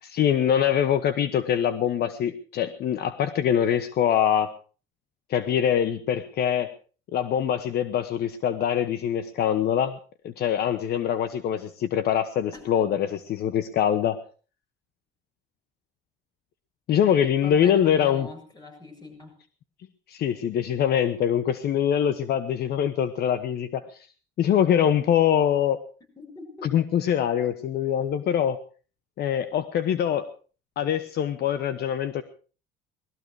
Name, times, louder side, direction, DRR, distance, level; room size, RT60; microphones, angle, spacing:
voice 1, 0.0-4.5 5.3-6.7 7.1-10.0 10.2-13.1 13.4-14.2 16.9-18.3 20.1-24.1 24.4-25.8 26.6-28.6 29.2-30.3 30.8-32.2, left 9 dB, 60° left, 12 dB, 1.2 m, -24 dB
voice 2, 12.5-13.0 16.9-17.0 17.4-19.3 26.2-26.7, left 2 dB, 20° left, 4 dB, 7.6 m, -43 dB
20.0 x 13.5 x 4.8 m, 0.38 s
cardioid pair, 115°, 18 cm